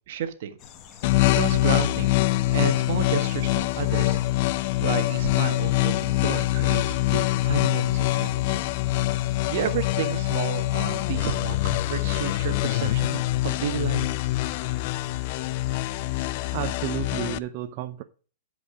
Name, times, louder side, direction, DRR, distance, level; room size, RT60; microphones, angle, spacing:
voice 1, 0.1-0.6 1.3-2.2 2.5-4.2 4.8-8.7 9.5-14.1, right 8 dB, 60° right, 9 dB, 1.5 m, -32 dB
sound 1, 0.6-17.0, left 8 dB, 30° left, 1.3 m, -46 dB
sound 2, 1.0-17.4, left 16 dB, 50° left, 0.5 m, -24 dB
voice 2, 16.5-18.0, right 14 dB, 45° right, 8 dB, 0.7 m, -32 dB
12.0 x 5.2 x 5.0 m, 0.38 s
hypercardioid pair, 140°, 0 cm